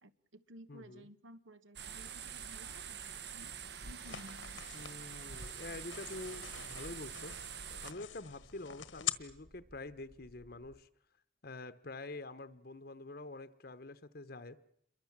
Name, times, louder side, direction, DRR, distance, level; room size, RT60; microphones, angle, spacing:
voice 1, 0.0-3.6 3.8-4.6, right 1 dB, 75° right, 12 dB, 1.4 m, -55 dB
voice 2, 0.7-1.1 4.7-7.3 7.8-10.9 11.4-14.6, left 2 dB, 50° left, 13 dB, 1.0 m, -47 dB
sound 1, 1.8-7.9, right 7 dB, 55° right, 1.2 m, -45 dB
sound 2, 2.8-10.8, equal, 25° right, 1.0 m, -63 dB
sound 3, 4.0-9.1, left 11 dB, 75° left, 1.4 m, -45 dB
28.0 x 23.0 x 7.4 m, 0.73 s
head